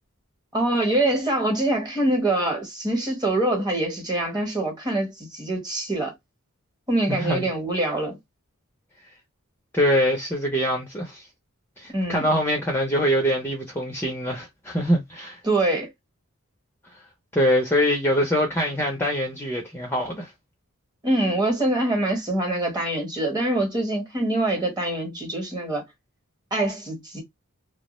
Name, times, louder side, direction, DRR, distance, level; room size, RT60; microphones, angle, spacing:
voice 1, 0.5-6.1 6.9-8.2 11.9-12.3 15.4-15.9 21.0-25.8 26.5-27.2, right 1 dB, 20° right, 1.1 m, -24 dB
voice 2, 7.1-7.5 9.7-11.2 11.8-15.4 17.3-20.3, equal, 10° left, 0.5 m, -23 dB
2.3 x 2.1 x 2.9 m
head